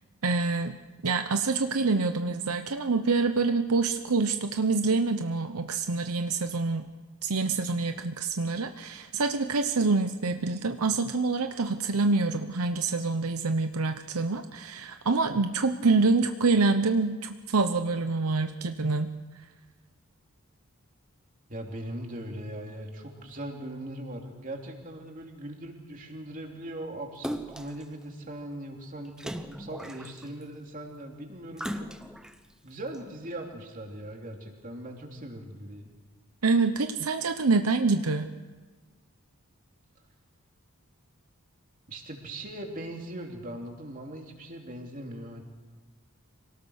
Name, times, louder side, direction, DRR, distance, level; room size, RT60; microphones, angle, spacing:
voice 1, 0.2-0.8 1.0-6.9 7.2-19.1 36.4-38.3, right 3 dB, 75° right, 7 dB, 0.9 m, -26 dB
voice 2, 21.5-31.9 32.6-35.9 41.9-45.4, right 1 dB, 35° right, 1 dB, 3.1 m, -40 dB
Splash splatter, 27.2-27.8 29.2-30.4 31.6-32.4 32.9-33.0, equal, 5° right, 0.8 m, -37 dB
26.0 x 18.0 x 6.5 m, 1.3 s
head